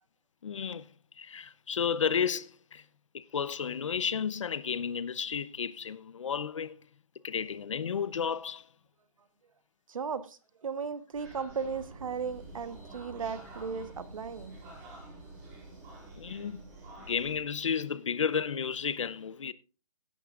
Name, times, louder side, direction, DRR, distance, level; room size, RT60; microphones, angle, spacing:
voice 1, 0.4-0.8 1.2-2.8 3.1-6.8 7.2-8.6 16.2-16.6 17.1-19.5, left 7 dB, 55° left, 0.8 m, -32 dB
voice 2, 9.9-14.6, right 6 dB, 60° right, 1.2 m, -36 dB
sound 1, 11.1-17.4, right 2 dB, 15° right, 4.6 m, -48 dB
16.0 x 11.5 x 2.5 m
hypercardioid pair, 175°, 19 cm